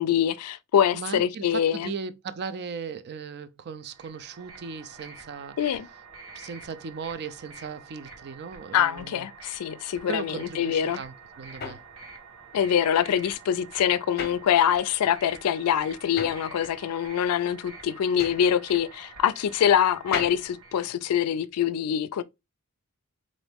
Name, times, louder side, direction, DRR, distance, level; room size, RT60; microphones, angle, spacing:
voice 1, 0.0-1.9 5.6-5.9 8.7-11.0 12.5-22.2, left 9 dB, 85° left, 0.3 m, -24 dB
voice 2, 0.9-5.6 6.3-9.3 10.0-11.8, right 5 dB, 50° right, 0.4 m, -37 dB
sound 1, 3.8-20.9, right 4 dB, 80° right, 1.1 m, -47 dB
sound 2, 10.8-15.1 15.4-21.6, left 5 dB, 45° left, 0.7 m, -39 dB
4.0 x 2.6 x 3.4 m
head